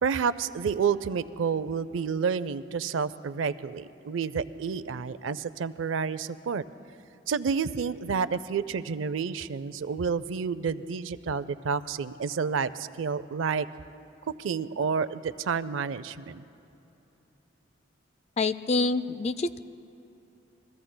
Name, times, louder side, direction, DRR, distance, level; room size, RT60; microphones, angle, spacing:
voice 1, 0.0-6.6 7.3-13.7 14.4-16.4, right 6 dB, 85° right, 15 dB, 0.4 m, -29 dB
voice 2, 18.4-19.6, left 3 dB, 35° left, 15 dB, 0.3 m, -26 dB
29.0 x 21.5 x 2.2 m, 2.9 s
head